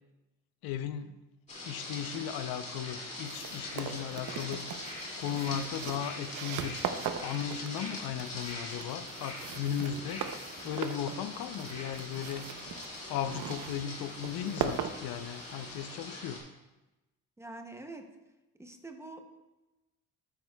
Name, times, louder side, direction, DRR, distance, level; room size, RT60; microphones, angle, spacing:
voice 1, 0.6-1.1 1.7-4.6 5.2-6.8 7.2-12.4 13.1-16.4, left 9 dB, 85° left, 10 dB, 0.6 m, -36 dB
sound 1, 1.5-16.4, left 2 dB, 20° left, 2.1 m, -42 dB
sound 2, 3.3-15.8, right 8 dB, 55° right, 0.7 m, -40 dB
voice 2, 17.4-18.1 18.6-19.2, right 2 dB, 10° right, 5 dB, 0.6 m, -45 dB
12.5 x 9.3 x 2.2 m, 1.0 s
cardioid pair, 170°, 35 cm